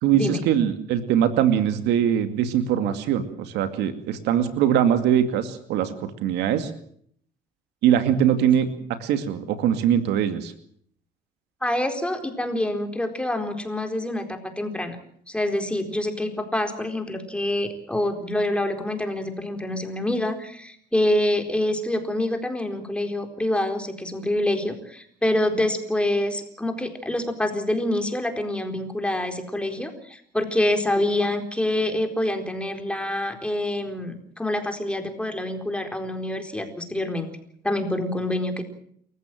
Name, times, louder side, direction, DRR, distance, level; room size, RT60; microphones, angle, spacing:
voice 1, 0.0-6.7 7.8-8.7 9.0-10.5, right 9 dB, 85° right, 9 dB, 2.3 m, -22 dB
voice 2, 11.6-15.0 15.3-37.3 37.6-38.6, left 1 dB, 5° left, 5 dB, 4.2 m, -26 dB
28.0 x 15.0 x 7.7 m, 0.64 s
cardioid pair, 110°, 17 cm